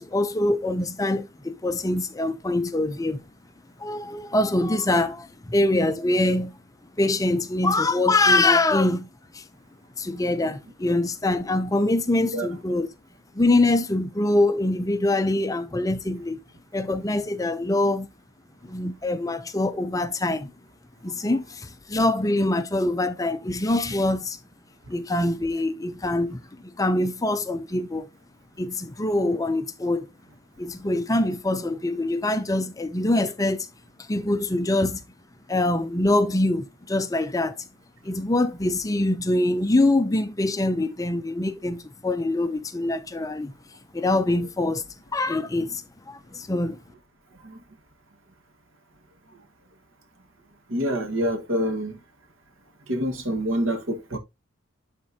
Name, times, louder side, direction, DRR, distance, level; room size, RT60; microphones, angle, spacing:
voice 1, 0.0-3.2 3.8-6.6 7.0-9.1 9.3-9.4 10.0-12.9 13.3-16.4 16.7-18.1 18.6-20.5 21.0-24.4 24.9-28.1 28.6-30.1 30.6-33.7 34.1-35.0 35.5-37.6 38.0-43.5 43.9-44.8 45.1-46.8, left 2 dB, 15° left, 0.5 m, -24 dB
voice 2, 50.7-52.0 52.9-54.2, equal, 80° right, 1.4 m, -26 dB
11.0 x 4.2 x 2.7 m
head